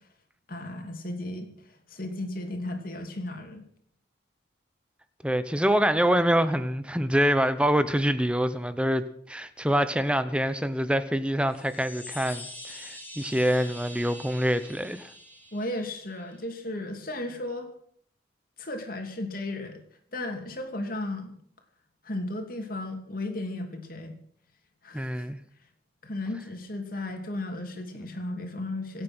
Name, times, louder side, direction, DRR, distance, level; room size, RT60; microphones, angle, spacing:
voice 1, 0.5-3.6 15.5-17.7 18.6-19.8 20.1-21.3 22.0-24.2 24.8-25.3 26.0-29.0, left 1 dB, 50° left, 2.9 m, -35 dB
voice 2, 5.2-15.1 24.9-25.4, equal, 5° right, 0.9 m, -25 dB
sound 1, 11.4-16.5, left 1 dB, 10° left, 3.6 m, -44 dB
26.0 x 8.8 x 6.2 m
head